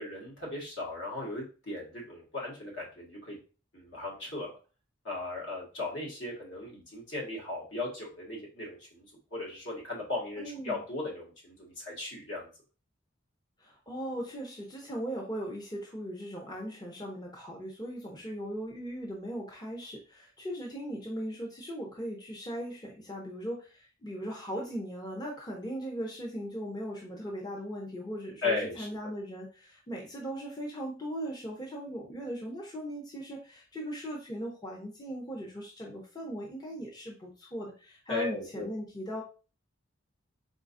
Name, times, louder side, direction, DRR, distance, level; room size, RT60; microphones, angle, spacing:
voice 1, 0.0-3.4 3.7-4.5 5.0-9.1 9.3-12.5 28.4-28.9 38.1-38.7, left 2 dB, 65° left, -3 dB, 1.8 m, -37 dB
voice 2, 10.4-10.8 13.6-39.2, equal, 20° left, -1 dB, 0.7 m, -38 dB
4.1 x 3.7 x 2.6 m, 0.34 s
head